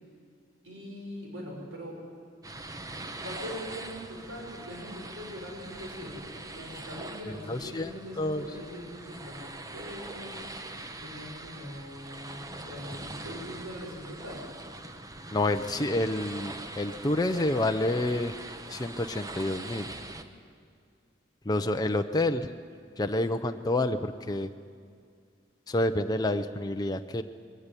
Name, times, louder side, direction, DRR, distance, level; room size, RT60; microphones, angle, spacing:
voice 1, 0.6-2.0 3.2-10.4 11.0-14.4, equal, 80° right, -1 dB, 5.8 m, -42 dB
sound 1, 2.4-20.2, right 2 dB, 20° right, 1.0 m, -42 dB
voice 2, 7.5-8.5 15.3-18.3 18.7-19.9 21.4-22.5 23.0-24.5 25.7-27.2, left 1 dB, 20° left, 6 dB, 0.6 m, -28 dB
21.5 x 16.0 x 9.9 m, 2.2 s
head